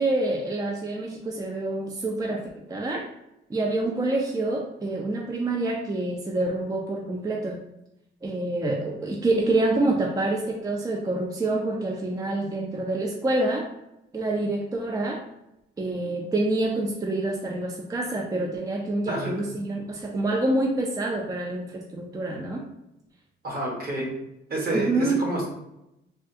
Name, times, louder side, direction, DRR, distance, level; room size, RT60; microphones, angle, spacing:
voice 1, 0.0-2.4 2.7-3.0 3.5-7.6 8.2-13.6 14.1-15.2 15.8-22.6 24.7-25.2, right 2 dB, 20° right, 0 dB, 0.4 m, -27 dB
voice 2, 23.4-24.1 24.5-25.5, right 1 dB, 50° right, -1 dB, 1.1 m, -28 dB
3.4 x 2.3 x 2.6 m, 0.86 s
cardioid pair, 90°, 20 cm